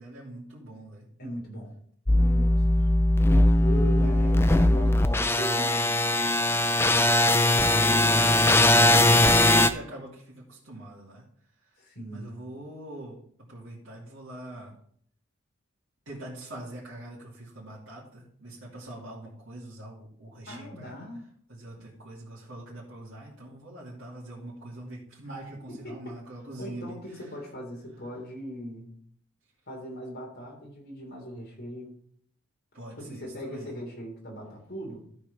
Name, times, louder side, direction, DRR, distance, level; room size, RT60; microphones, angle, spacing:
voice 1, 0.0-1.1 4.0-4.1 9.1-11.2 12.1-13.2 13.5-14.7 16.1-20.9 21.5-27.0 32.7-33.7, right 1 dB, 65° right, -8 dB, 2.6 m, -43 dB
voice 2, 1.2-1.7 2.2-2.9 3.6-8.7 11.8-12.4 20.5-21.3 21.8-21.9 25.7-26.2 26.6-28.9 29.7-31.9 33.0-35.0, equal, 50° left, -1 dB, 3.1 m, -40 dB
sound 1, 2.1-9.7, left 1 dB, 10° left, 0.4 m, -20 dB
13.0 x 4.5 x 5.1 m, 0.63 s
head